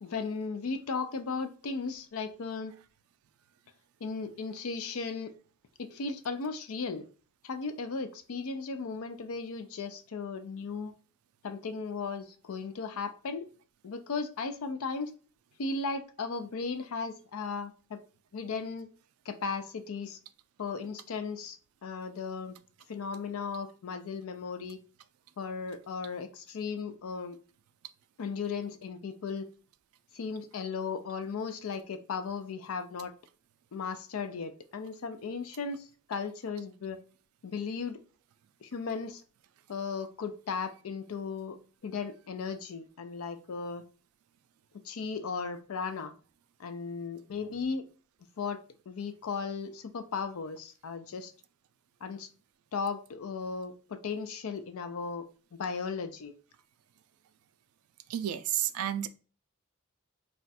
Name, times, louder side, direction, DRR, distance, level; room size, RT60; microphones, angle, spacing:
voice 1, 0.0-2.7 4.0-5.3 5.8-7.1 7.4-10.9 11.4-13.5 13.8-15.1 15.6-18.0 18.3-18.9 19.3-20.2 20.6-22.6 22.9-24.8 25.4-27.4 28.2-29.5 30.1-33.1 33.7-37.0 37.4-38.0 38.6-39.2 39.7-43.8 44.7-46.1 46.6-47.8 48.4-51.3 52.0-52.3 52.7-55.3 55.5-56.3, left 5 dB, 80° left, 0.5 m, -36 dB
voice 2, 58.1-59.1, right 11 dB, 85° right, 0.3 m, -31 dB
2.4 x 2.2 x 4.0 m
head